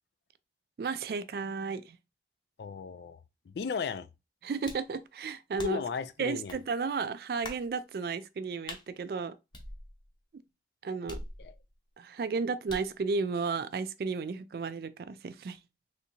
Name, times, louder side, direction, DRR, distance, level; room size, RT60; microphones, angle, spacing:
voice 1, 0.8-2.0 4.4-5.8 6.2-9.3 10.8-11.2 12.0-15.6, right 4 dB, 55° right, 0.3 m, -33 dB
voice 2, 2.6-4.1 5.6-6.6 11.4-11.5, left 5 dB, 70° left, 0.3 m, -35 dB
sound 1, 4.7-4.9 5.6-6.0 6.5-6.6 7.4-7.7 8.7-8.9 9.5-10.2 11.1-11.8 12.7-13.0, left 1 dB, 25° left, 0.6 m, -44 dB
3.4 x 2.8 x 2.7 m
head